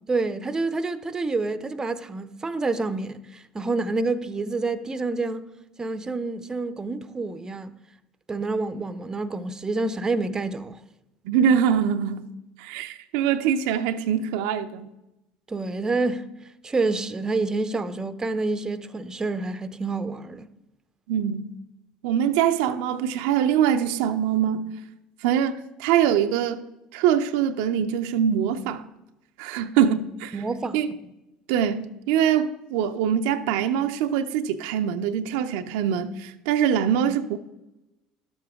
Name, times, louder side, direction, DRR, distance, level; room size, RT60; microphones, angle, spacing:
voice 1, 0.1-5.5 5.8-7.7 8.3-10.8 15.5-16.3 16.6-20.5 30.3-30.8, right 3 dB, 20° right, 0.6 m, -28 dB
voice 2, 11.2-12.3 12.6-14.9 21.1-21.5 22.0-24.7 25.2-26.6 26.9-28.8 29.4-30.4 30.7-30.9 31.5-37.4, right 9 dB, 75° right, 0.6 m, -23 dB
11.5 x 7.7 x 3.6 m
hypercardioid pair, 80°, 3 cm